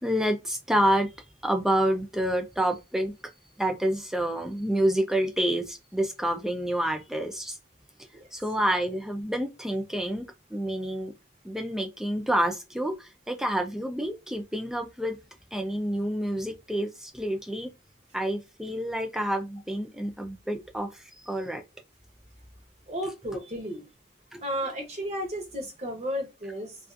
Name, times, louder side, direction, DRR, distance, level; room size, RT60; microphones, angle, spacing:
voice 1, 0.0-1.1 1.4-3.1 3.6-7.6 8.3-10.2 10.5-11.1 11.4-15.2 15.5-17.7 18.1-21.6 24.3-24.4, right 1 dB, ahead, 0.4 m, -28 dB
voice 2, 22.9-23.9 24.4-26.8, equal, 35° right, 0.8 m, -33 dB
2.4 x 2.4 x 2.4 m
head